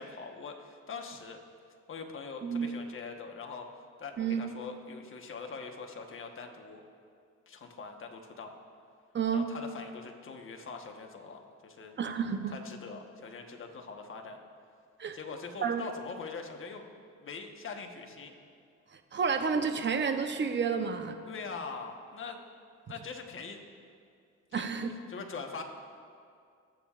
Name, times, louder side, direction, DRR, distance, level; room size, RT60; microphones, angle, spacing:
voice 1, 0.0-1.4 1.9-3.7 4.0-6.8 7.5-8.5 9.3-11.9 12.5-14.4 15.1-18.3 21.3-22.4 22.9-23.6 24.5-24.6 25.1-25.6, left 4 dB, 45° left, 3 dB, 1.2 m, -43 dB
voice 2, 4.2-4.5 9.1-9.5 12.0-12.5 15.0-15.2 15.6-15.8 18.9-21.2 24.5-24.9, right 6 dB, 40° right, 7 dB, 0.8 m, -30 dB
20.5 x 7.3 x 2.5 m, 2.3 s
cardioid pair, 90°, 30 cm